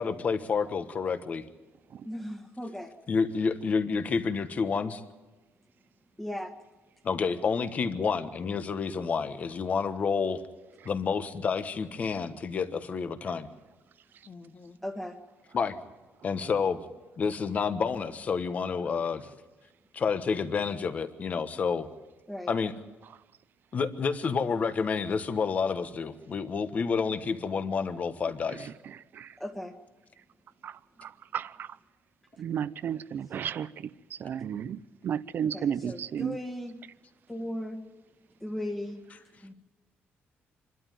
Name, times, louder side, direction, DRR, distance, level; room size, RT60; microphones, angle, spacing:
voice 1, 0.0-1.4 3.1-5.0 7.0-10.4 10.8-13.5 14.3-14.8 15.5-15.7 16.2-16.8 17.2-19.3 19.9-21.9 22.5-22.7 23.7-28.7, left 5 dB, 35° left, 1.3 m, -29 dB
voice 2, 2.0-2.9 6.2-6.5 14.8-15.2 22.3-22.5 29.4-29.7 35.5-36.7 37.3-37.8 38.4-39.0 39.4-39.5, left 1 dB, 5° left, 1.7 m, -37 dB
voice 3, 31.0-31.7 32.4-33.7 34.2-36.4, right 8 dB, 50° right, 0.7 m, -33 dB
26.5 x 12.5 x 9.2 m
cardioid pair, 160°, 4 cm